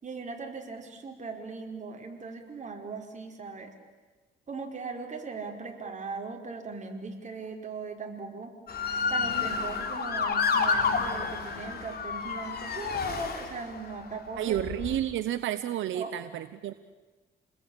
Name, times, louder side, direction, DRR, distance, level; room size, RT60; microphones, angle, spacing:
voice 1, 0.0-3.7 4.5-8.5 9.1-14.6 15.9-16.1, right 4 dB, 40° right, 2 dB, 4.9 m, -39 dB
Motor vehicle (road) / Siren, 8.7-13.9 14.5-15.0, left 5 dB, 50° left, 3.6 m, -30 dB
voice 2, 14.4-16.7, right 12 dB, 80° right, 11 dB, 1.1 m, -31 dB
29.0 x 20.5 x 8.9 m, 1.2 s
cardioid pair, 90°, 20 cm